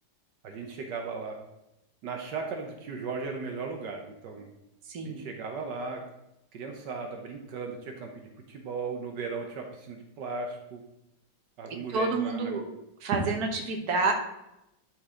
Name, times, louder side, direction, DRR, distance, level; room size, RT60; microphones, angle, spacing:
voice 1, 0.4-1.4 2.0-4.5 5.0-6.0 6.5-10.8 11.6-12.5, right 4 dB, 80° right, 3 dB, 1.5 m, -37 dB
voice 2, 4.9-5.3 11.9-12.6 13.0-14.1, right 3 dB, 60° right, 3 dB, 1.6 m, -28 dB
11.5 x 4.7 x 3.7 m, 0.87 s
omnidirectional pair, 1.9 m